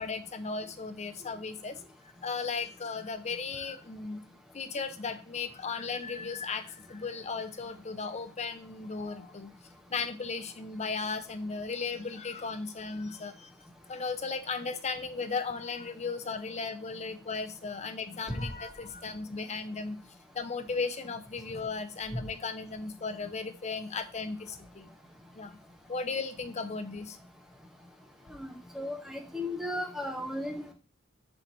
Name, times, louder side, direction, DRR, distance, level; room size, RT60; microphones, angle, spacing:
voice 1, 0.0-4.2 4.5-9.5 9.9-13.5 13.9-20.0 20.3-24.9 25.3-25.6 25.9-27.2, left 4 dB, 30° left, 9 dB, 0.6 m, -36 dB
voice 2, 28.3-30.7, left 1 dB, ahead, 2 dB, 1.0 m, -35 dB
5.9 x 4.5 x 4.0 m, 0.34 s
head